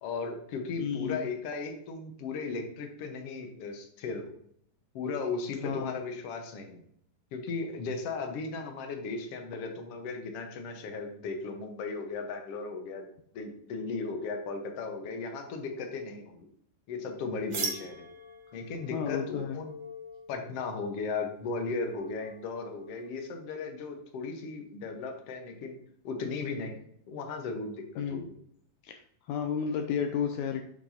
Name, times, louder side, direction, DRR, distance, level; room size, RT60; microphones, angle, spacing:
voice 1, 0.0-4.3 4.9-6.8 7.3-13.1 13.3-16.4 16.9-18.1 18.5-19.8 20.3-25.8 26.0-26.8 27.1-28.2, left 4 dB, 60° left, 3 dB, 1.7 m, -36 dB
voice 2, 0.8-1.3 5.6-5.9 18.9-19.6 28.0-28.2 28.8-29.0 29.3-30.6, left 7 dB, 85° left, 5 dB, 1.7 m, -32 dB
sound 1, 17.5-23.1, right 2 dB, 55° right, 1.3 m, -42 dB
7.5 x 6.1 x 2.8 m, 0.68 s
omnidirectional pair, 4.0 m